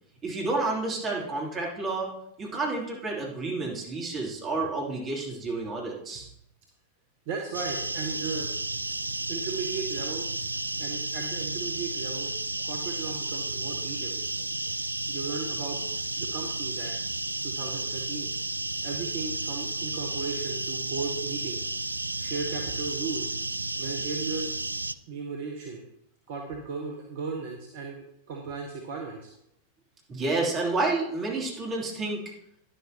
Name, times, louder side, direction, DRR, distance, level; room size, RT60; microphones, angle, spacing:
voice 1, 0.2-2.1 2.4-6.3 30.1-32.2, right 3 dB, 25° right, -3 dB, 3.2 m, -30 dB
voice 2, 7.3-8.5 9.3-10.5 10.8-12.3 12.6-14.2 15.1-15.8 16.1-16.9 17.4-18.3 18.8-21.7 22.2-23.3 23.8-24.5 25.1-25.8 26.3-29.3, right 4 dB, 50° right, 1 dB, 1.3 m, -36 dB
sound 1, 7.5-24.9, right 2 dB, 85° right, 0.3 m, -32 dB
11.5 x 11.0 x 3.0 m, 0.76 s
figure-of-eight pair, 90°, 0 cm